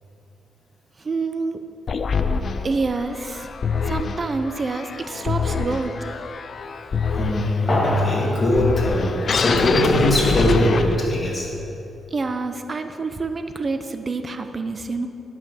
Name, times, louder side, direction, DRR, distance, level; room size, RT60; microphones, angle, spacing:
voice 1, 1.0-1.7 2.6-3.5 3.9-6.3 12.1-15.1, right 3 dB, 35° right, 8 dB, 0.7 m, -27 dB
sound 1, 1.9-11.3, left 5 dB, 50° left, 0.5 m, -25 dB
voice 2, 7.0-11.5, left 1 dB, 25° left, -4 dB, 2.6 m, -20 dB
10.0 x 5.8 x 6.9 m, 2.9 s
cardioid pair, 105°, 0 cm